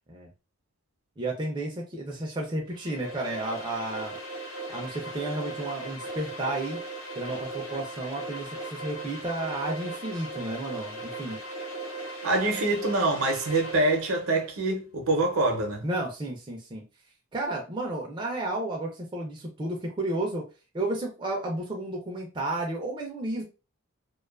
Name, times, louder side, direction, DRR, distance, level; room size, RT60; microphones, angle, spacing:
voice 1, 1.2-4.2 4.7-6.8 7.2-11.4 15.8-16.8 17.3-20.4 20.7-23.4, right 2 dB, 20° right, 0.3 m, -32 dB
sound 1, 2.7-14.3, right 2 dB, 65° left, 0.5 m, -38 dB
voice 2, 12.2-15.9, right 2 dB, 70° right, 0.6 m, -25 dB
2.4 x 2.2 x 2.3 m
head